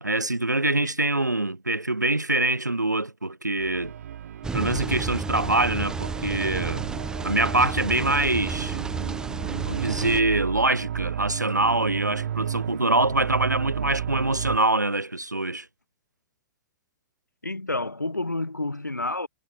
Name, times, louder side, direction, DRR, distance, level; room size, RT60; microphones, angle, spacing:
voice 1, 0.0-3.9 4.5-6.8 7.2-8.8 9.6-15.7, right 2 dB, 90° right, 0.9 m, -24 dB
sound 1, 3.6-14.6, right 10 dB, 60° right, 0.6 m, -33 dB
sound 2, 4.4-10.2, right 4 dB, 5° right, 0.6 m, -32 dB
voice 2, 17.4-19.3, left 2 dB, 85° left, 1.4 m, -29 dB
figure-of-eight pair, 105°, 9 cm